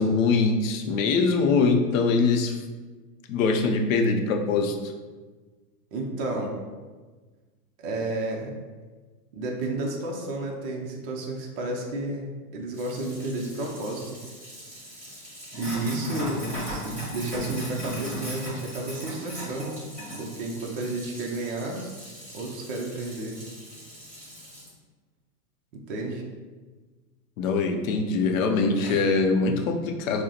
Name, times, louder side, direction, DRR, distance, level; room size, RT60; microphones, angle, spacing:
voice 1, 0.0-2.6 3.3-4.8 27.4-30.2, left 4 dB, 55° left, 3 dB, 0.6 m, -23 dB
voice 2, 5.9-6.6 7.8-8.5 9.3-14.2 15.6-19.8 20.2-21.8 22.3-23.4 25.7-26.2 28.8-29.0, right 2 dB, 35° right, 0 dB, 0.5 m, -32 dB
Sink (filling or washing), 12.7-24.7, right 1 dB, 5° left, 1.5 m, -37 dB
4.8 x 2.1 x 2.9 m, 1.3 s
hypercardioid pair, 130°, 48 cm